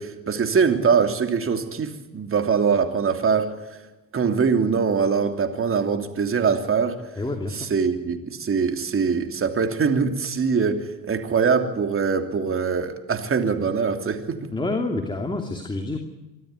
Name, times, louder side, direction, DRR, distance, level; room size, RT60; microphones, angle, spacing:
voice 1, 0.0-3.5 4.1-7.0 7.6-14.4, right 5 dB, 40° right, 7 dB, 3.1 m, -23 dB
voice 2, 7.1-7.7 14.5-16.0, left 2 dB, 15° left, 4 dB, 2.8 m, -28 dB
25.5 x 13.0 x 9.5 m, 1.1 s
supercardioid pair, 85°, 33 cm